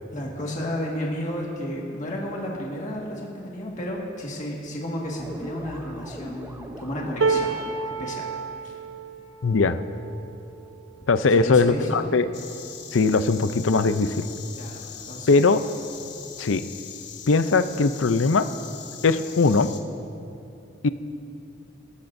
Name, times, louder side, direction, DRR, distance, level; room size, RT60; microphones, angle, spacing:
voice 1, 0.1-7.5 7.8-8.3 8.6-8.8 11.2-12.2 14.5-15.5, equal, 40° left, -3 dB, 1.8 m, -32 dB
sound 1, 5.1-8.2, right 1 dB, 15° right, 0.7 m, -40 dB
sound 2, 7.2-13.4 13.9-14.1 14.4-15.2 16.2-16.3, right 4 dB, 85° right, 0.9 m, -31 dB
voice 2, 9.4-9.8 11.1-12.3 12.9-14.3 15.3-15.6 16.4-16.6 17.3-18.5 19.0-19.7 20.8-20.9, left 4 dB, 85° left, 11 dB, 0.6 m, -20 dB
Insect, 12.3-19.8, left 8 dB, 65° left, 1.2 m, -41 dB
27.0 x 14.0 x 2.7 m, 2.7 s
head